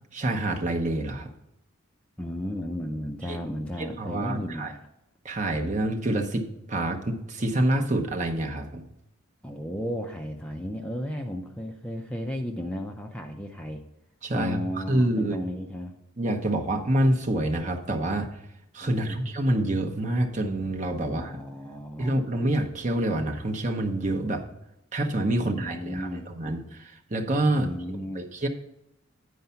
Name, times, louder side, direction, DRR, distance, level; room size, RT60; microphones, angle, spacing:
voice 1, 0.1-1.3 3.3-3.4 3.8-4.7 5.2-8.9 14.2-15.4 16.2-18.4 18.7-21.4 22.0-24.4 24.9-27.7 28.1-28.5, right 1 dB, 35° right, 3 dB, 0.9 m, -27 dB
voice 2, 2.2-4.9 9.4-13.8 14.3-16.0 18.8-19.2 21.0-22.2 25.4-26.3 27.6-28.3, equal, 5° left, 3 dB, 0.5 m, -34 dB
9.4 x 4.7 x 5.6 m, 0.82 s
head